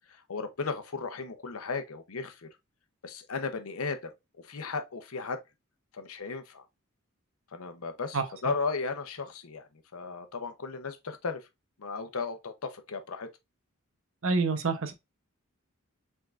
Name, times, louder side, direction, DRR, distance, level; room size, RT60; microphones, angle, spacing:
voice 1, 0.3-2.5 3.0-4.1 4.4-5.4 5.9-6.6 7.5-11.4 11.8-13.3, left 4 dB, 80° left, 0.8 m, -35 dB
voice 2, 14.2-14.9, right 4 dB, 65° right, 0.8 m, -27 dB
4.7 x 3.7 x 2.4 m
head